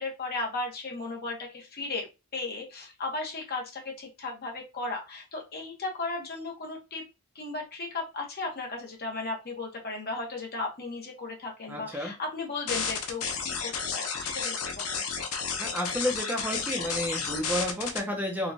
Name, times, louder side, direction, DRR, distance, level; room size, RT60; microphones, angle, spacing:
voice 1, 0.0-7.1 7.3-15.0, left 3 dB, 45° left, 0 dB, 1.1 m, -36 dB
voice 2, 11.7-12.1 15.6-18.5, equal, 10° right, 1 dB, 0.7 m, -31 dB
sound 1, 12.7-18.0, left 5 dB, 90° left, 0.7 m, -32 dB
4.4 x 2.3 x 2.7 m, 0.26 s
head